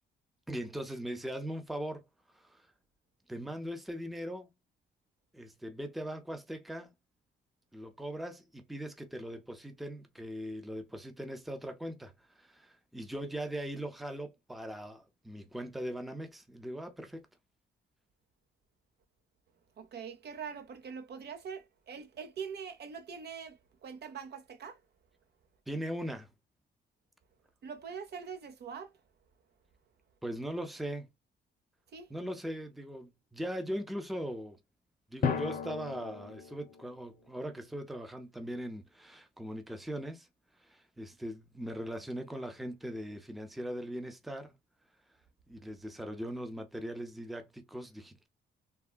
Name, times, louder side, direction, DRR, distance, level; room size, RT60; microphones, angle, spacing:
voice 1, 0.5-2.1 2.3-2.7 3.3-4.5 5.3-6.9 7.7-17.3 25.7-26.3 30.2-31.1 32.1-34.6 35.1-40.3 40.6-44.5 45.5-48.3, equal, ahead, 0.6 m, -40 dB
voice 2, 19.8-24.8 27.6-28.9 31.9-32.1, right 6 dB, 55° right, 0.7 m, -43 dB
Drum, 35.2-37.5, left 6 dB, 45° left, 0.7 m, -35 dB
3.6 x 2.1 x 2.2 m
cardioid pair, 90°, 20 cm